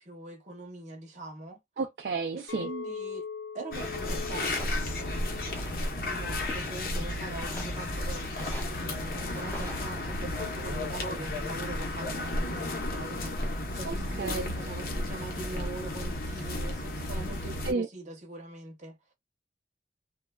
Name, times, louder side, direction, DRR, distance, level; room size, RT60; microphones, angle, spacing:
voice 1, 0.0-1.6 2.3-3.3 3.5-5.6 6.0-19.0, right 2 dB, 40° right, 0.8 m, -43 dB
voice 2, 1.8-2.7 13.9-14.5 17.7-17.9, right 4 dB, 65° right, 0.4 m, -32 dB
Chink clink, 2.5-6.8 7.2-7.6, left 6 dB, 85° left, 0.4 m, -42 dB
sound 1, 3.7-17.7, left 1 dB, 55° left, 0.8 m, -33 dB
Walk footsteps, 4.5-5.0 5.5-6.0 6.5-7.0 7.4-7.8 8.4-8.8 9.3-9.8, equal, 10° left, 0.7 m, -44 dB
3.2 x 2.2 x 2.2 m
head